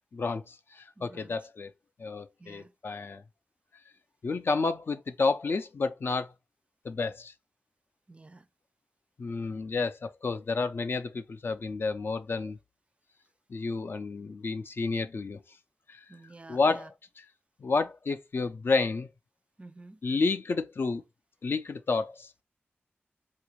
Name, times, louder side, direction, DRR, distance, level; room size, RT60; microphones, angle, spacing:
voice 1, 0.1-1.7 2.0-3.2 4.2-6.3 6.8-7.3 9.2-12.6 13.5-15.4 15.9-16.0 16.5-17.3 17.6-19.1 20.0-21.0 21.4-22.4, left 4 dB, 60° left, 0.3 m, -30 dB
voice 2, 1.0-1.4 2.4-2.7 8.1-8.5 16.1-16.9 19.6-20.0, right 2 dB, 30° right, 0.4 m, -50 dB
3.6 x 2.5 x 2.9 m
wide cardioid pair, 75°, 4 cm